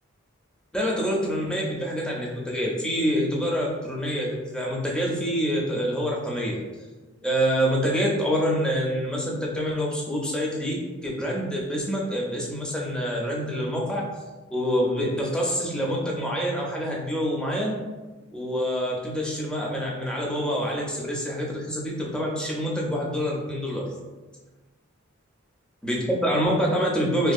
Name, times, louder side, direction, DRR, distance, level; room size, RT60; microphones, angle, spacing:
voice 1, 0.7-6.6 7.2-14.0 14.5-17.8 18.3-23.9 25.8-27.3, equal, 5° left, -3 dB, 0.4 m, -26 dB
2.6 x 2.3 x 2.3 m, 1.2 s
head